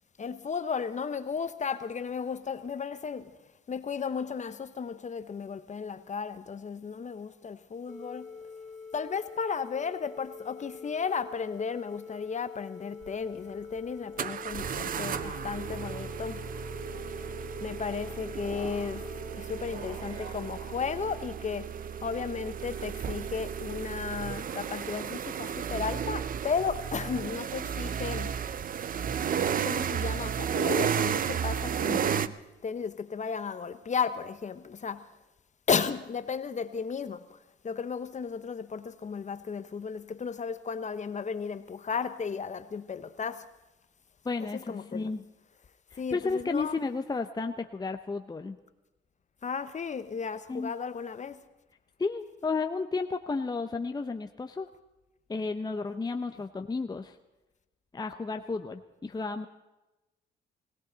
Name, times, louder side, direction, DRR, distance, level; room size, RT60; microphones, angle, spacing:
voice 1, 0.2-3.4 3.7-8.3 8.9-16.5 17.6-21.7 22.0-28.3 29.6-35.1 35.7-37.4 37.6-43.5 44.4-45.1 45.9-46.9 49.4-51.4, left 6 dB, 35° left, 1.0 m, -34 dB
sound 1, 7.9-19.3, left 4 dB, ahead, 2.3 m, -45 dB
sound 2, 13.0-13.1 14.2-32.3, right 8 dB, 45° right, 0.6 m, -33 dB
sound 3, 14.9-20.3, right 2 dB, 65° right, 5.0 m, -50 dB
voice 2, 44.2-45.2 45.9-48.6 50.5-50.7 52.0-54.7 55.3-57.2 57.9-59.5, left 4 dB, 20° left, 0.7 m, -32 dB
21.0 x 17.0 x 4.0 m
cardioid pair, 90°, 20 cm